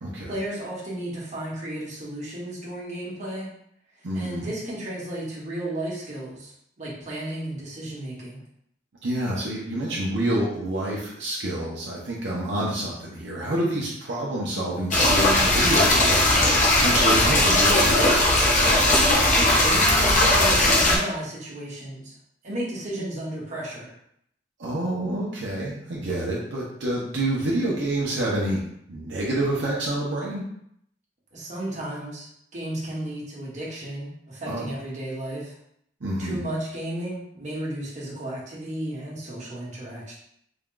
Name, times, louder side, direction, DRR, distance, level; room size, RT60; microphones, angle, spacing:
voice 1, 0.3-3.5 4.1-8.4 19.0-22.1 22.4-23.9 31.3-32.3 32.5-35.5 36.2-40.1, right 1 dB, 40° right, -6 dB, 1.3 m, -33 dB
voice 2, 4.0-4.5 9.0-16.3 16.8-18.1 24.6-28.6 28.9-30.5 34.5-34.7 36.0-36.4, right 1 dB, 75° right, -5 dB, 0.8 m, -27 dB
sound 1, 14.9-21.0, left 1 dB, 45° left, 0.9 m, -18 dB
3.7 x 2.3 x 3.7 m, 0.72 s
head